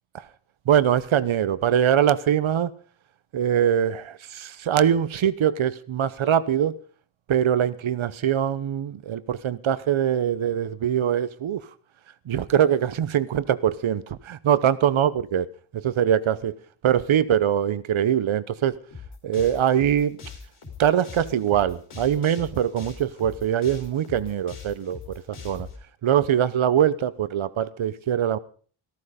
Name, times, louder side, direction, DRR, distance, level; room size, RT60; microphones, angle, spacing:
voice 1, 0.7-2.7 3.3-6.8 7.3-11.6 12.3-15.5 15.7-16.5 16.8-18.8 19.2-20.2 20.8-25.7 26.0-28.4, right 9 dB, 75° right, 1.0 m, -23 dB
sound 1, 18.9-25.8, left 5 dB, 85° left, 4.5 m, -41 dB
14.5 x 14.0 x 5.1 m
wide cardioid pair, 160°, 49 cm